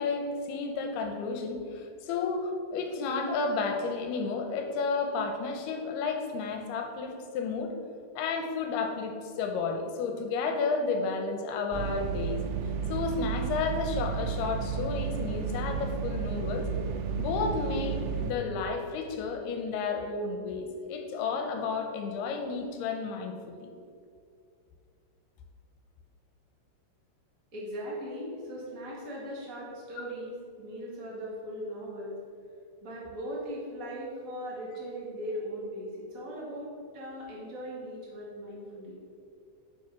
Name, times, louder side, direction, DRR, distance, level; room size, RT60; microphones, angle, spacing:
voice 1, 0.0-7.7 8.2-12.4 12.9-16.7 17.2-23.7, left 4 dB, 75° left, 4 dB, 2.6 m, -32 dB
sound 1, 11.7-18.3, right 6 dB, 90° right, 2.8 m, -32 dB
voice 2, 27.5-32.2 32.8-39.0, equal, 25° right, -6 dB, 2.0 m, -39 dB
7.6 x 6.2 x 6.1 m, 2.4 s
omnidirectional pair, 4.9 m